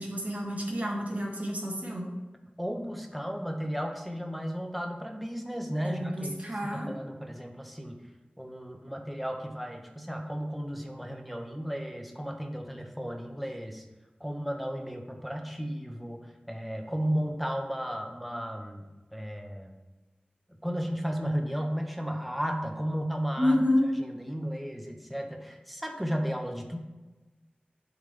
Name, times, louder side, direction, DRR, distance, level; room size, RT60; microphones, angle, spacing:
voice 1, 0.0-2.1 5.8-6.9 23.4-23.9, left 1 dB, 50° right, -2 dB, 1.7 m, -29 dB
voice 2, 2.6-6.3 6.6-8.0 8.4-13.8 14.2-19.7 20.6-23.6 24.0-26.8, equal, ahead, 3 dB, 1.0 m, -34 dB
11.0 x 3.9 x 3.3 m, 1.2 s
wide cardioid pair, 60°, 3 cm